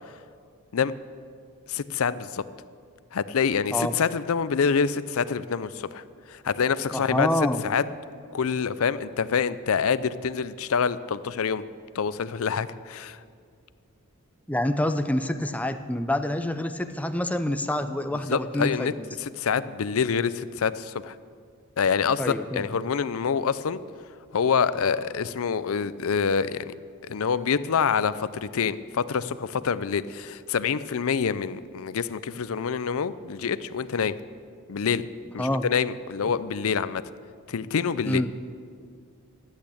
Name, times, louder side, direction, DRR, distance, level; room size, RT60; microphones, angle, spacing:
voice 1, 1.7-2.4 3.1-7.3 7.6-7.8 8.3-11.6 11.9-13.2 18.3-18.9 19.2-21.2 21.8-23.8 24.3-26.7 27.0-34.1 34.7-35.1 35.3-37.0 37.5-38.2, left 6 dB, 65° left, 15 dB, 0.5 m, -26 dB
voice 2, 6.9-7.6 14.5-19.1 22.2-22.6 35.4-35.7 38.1-38.3, left 1 dB, 5° left, 9 dB, 0.5 m, -27 dB
13.0 x 8.5 x 8.5 m, 2.2 s
head